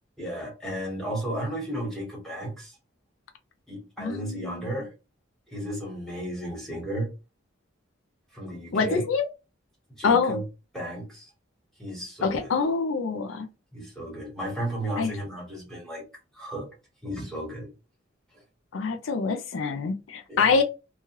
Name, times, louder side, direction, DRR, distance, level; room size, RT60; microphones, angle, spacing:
voice 1, 0.2-2.7 3.7-4.9 5.5-7.1 8.3-9.0 10.0-10.4 10.7-11.3 11.8-12.5 13.7-16.0 16.3-16.7 17.0-17.7 20.3-20.6, right 1 dB, 5° left, 1.3 m, -34 dB
voice 2, 4.0-4.7 8.7-9.3 10.0-10.4 12.2-13.5 15.0-15.1 18.7-20.6, left 5 dB, 90° left, 0.4 m, -25 dB
3.0 x 2.3 x 2.9 m
head